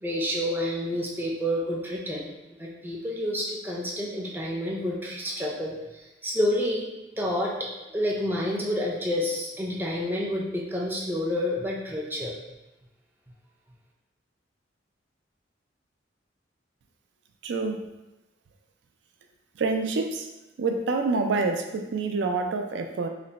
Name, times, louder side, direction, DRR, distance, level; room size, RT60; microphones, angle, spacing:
voice 1, 0.0-2.3 2.6-6.9 7.2-12.3, left 1 dB, 10° right, -2 dB, 0.5 m, -29 dB
voice 2, 17.4-17.8 19.6-20.3 20.6-23.1, right 3 dB, 65° right, 5 dB, 0.4 m, -27 dB
3.3 x 2.0 x 3.9 m, 1.0 s
head